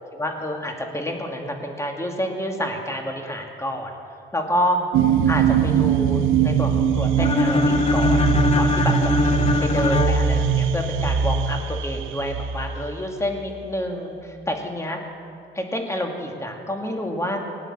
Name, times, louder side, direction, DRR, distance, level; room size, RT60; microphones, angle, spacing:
voice 1, 0.1-4.0 4.3-4.8 5.3-8.2 8.5-15.0 15.5-17.4, equal, 15° left, 2 dB, 2.2 m, -28 dB
sound 1, 4.9-13.5, right 7 dB, 90° right, 0.8 m, -22 dB
sound 2, 7.2-11.1, left 2 dB, 30° left, 0.9 m, -22 dB
19.0 x 9.1 x 7.3 m, 2.5 s
cardioid pair, 90°, 20 cm